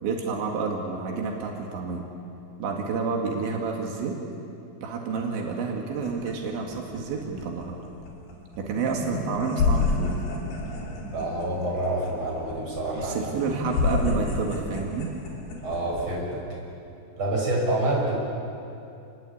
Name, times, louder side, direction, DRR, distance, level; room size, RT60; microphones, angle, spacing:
voice 1, 0.0-2.1 2.6-4.2 4.8-7.8 8.6-10.1 13.0-15.1, right 4 dB, 85° right, 0 dB, 4.4 m, -29 dB
sound 1, 5.9-16.2, left 3 dB, 60° left, 5.1 m, -30 dB
voice 2, 11.1-13.3 15.6-16.4 17.2-18.1, right 2 dB, 25° right, -3 dB, 7.5 m, -27 dB
28.5 x 21.5 x 8.7 m, 2.7 s
omnidirectional pair, 5.1 m